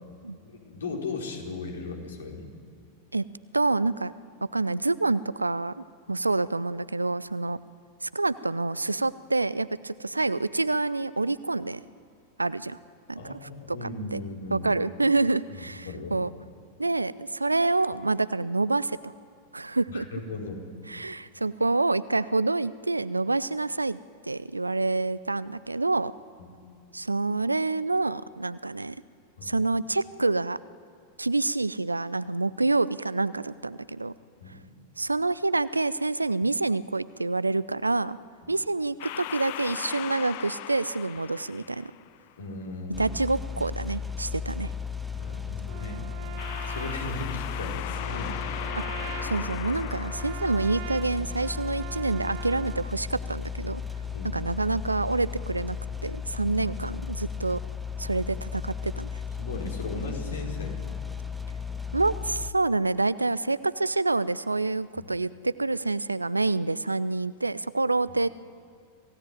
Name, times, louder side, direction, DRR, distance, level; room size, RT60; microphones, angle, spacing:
voice 1, 0.4-2.5 13.2-14.7 15.5-16.2 19.9-20.7 26.4-26.5 29.4-29.6 34.4-34.6 38.4-38.5 42.4-43.1 45.1-46.1 46.7-48.4 54.1-54.4 56.4-56.6 59.4-60.7 64.9-65.1 68.1-68.2, left 3 dB, 65° left, 1 dB, 4.6 m, -37 dB
voice 2, 3.5-4.1 4.5-5.7 6.1-7.6 8.0-11.8 12.4-12.8 13.1-14.2 14.5-16.3 16.8-19.1 19.5-20.1 20.9-24.0 24.3-26.1 26.9-29.0 29.4-30.6 31.2-34.1 35.0-38.2 38.5-41.9 43.0-44.7 48.8-48.9 49.2-53.8 54.3-55.8 56.0-57.6 58.0-59.1 61.9-68.3, right 3 dB, 80° right, 18 dB, 0.6 m, -27 dB
sound 1, 39.0-42.3 46.4-51.2, left 14 dB, 50° left, 0.8 m, -38 dB
sound 2, 42.9-62.5, left 6 dB, 5° right, 1.1 m, -35 dB
Trumpet, 45.7-52.9, right 16 dB, 50° right, 0.9 m, -42 dB
26.5 x 17.0 x 9.4 m, 2.3 s
figure-of-eight pair, 90°, 0 cm